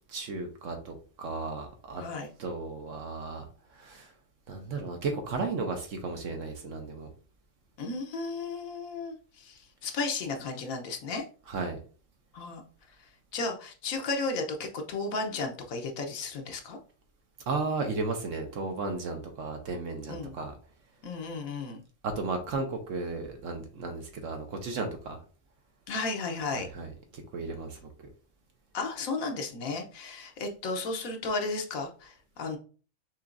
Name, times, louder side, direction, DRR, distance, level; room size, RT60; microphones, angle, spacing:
voice 1, 0.1-2.0 2.4-3.5 3.7-4.1 4.5-7.1 11.5-11.8 17.5-20.5 22.0-25.2 26.5-26.9 27.3-27.9, right 3 dB, 70° right, 1.1 m, -34 dB
voice 2, 2.0-2.3 7.8-11.2 12.3-12.6 13.3-16.8 20.1-20.3 21.0-21.8 25.9-26.7 28.7-32.6, left 3 dB, 80° left, 1.3 m, -34 dB
6.0 x 2.9 x 2.5 m
omnidirectional pair, 1.4 m